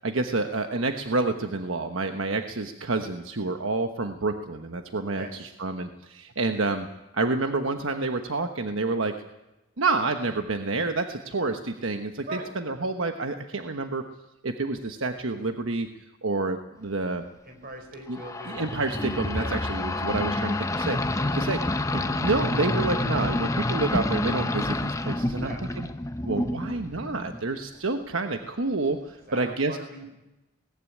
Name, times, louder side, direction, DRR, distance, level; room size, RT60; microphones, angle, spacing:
voice 1, 0.0-6.9 7.1-9.1 9.8-14.0 14.4-15.9 16.2-17.3 18.1-18.2 18.5-21.6 21.9-25.9 26.2-29.8, right 3 dB, 75° right, 6 dB, 1.2 m, -28 dB
voice 2, 17.4-18.6 19.3-19.5 21.1-21.4 25.4-25.6 29.3-30.1, right 1 dB, 45° right, 5 dB, 4.5 m, -40 dB
sound 1, 18.1-27.5, left 2 dB, 15° left, 0.7 m, -28 dB
19.0 x 14.5 x 9.9 m, 1.0 s
head